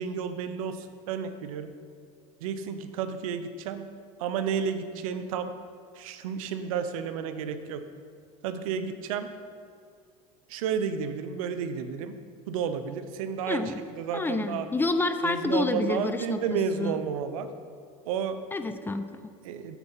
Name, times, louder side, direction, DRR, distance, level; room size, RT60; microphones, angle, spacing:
voice 1, 0.0-1.7 2.4-3.8 4.2-5.5 6.0-7.8 8.4-9.3 10.5-12.1 12.5-14.7 15.2-17.5 18.1-18.4 19.4-19.8, right 7 dB, 90° right, 10 dB, 0.5 m, -31 dB
voice 2, 13.5-13.8 14.1-16.4 16.8-17.0 18.5-19.3, left 3 dB, 10° left, 9 dB, 0.3 m, -28 dB
7.1 x 4.5 x 5.4 m, 2.2 s
supercardioid pair, 110°, 17 cm